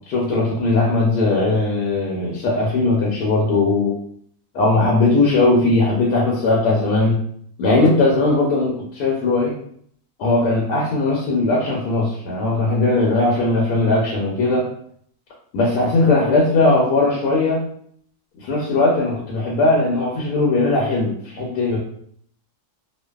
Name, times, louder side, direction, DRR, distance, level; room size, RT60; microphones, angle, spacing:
voice 1, 0.1-4.0 4.5-7.2 7.6-9.5 10.2-14.7 15.5-17.6 18.4-21.8, left 2 dB, 80° left, -3 dB, 1.1 m, -18 dB
2.5 x 2.2 x 2.2 m, 0.64 s
omnidirectional pair, 1.7 m